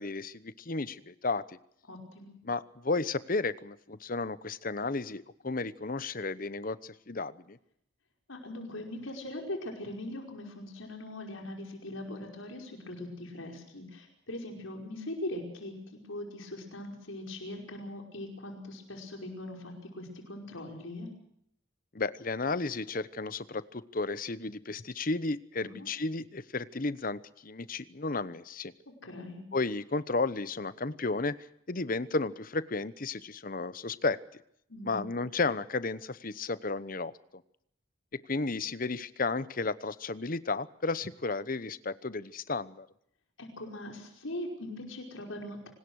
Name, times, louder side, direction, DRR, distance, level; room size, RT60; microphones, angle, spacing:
voice 1, 0.0-1.6 2.4-7.6 21.9-28.7 29.5-31.4 31.7-34.2 34.8-37.1 38.3-42.9, left 3 dB, 45° left, 16 dB, 0.9 m, -33 dB
voice 2, 1.9-2.4 8.3-21.1 25.6-25.9 29.0-29.4 34.7-35.0 43.4-45.7, left 1 dB, 80° left, 2 dB, 5.3 m, -41 dB
26.0 x 19.5 x 6.4 m, 0.70 s
head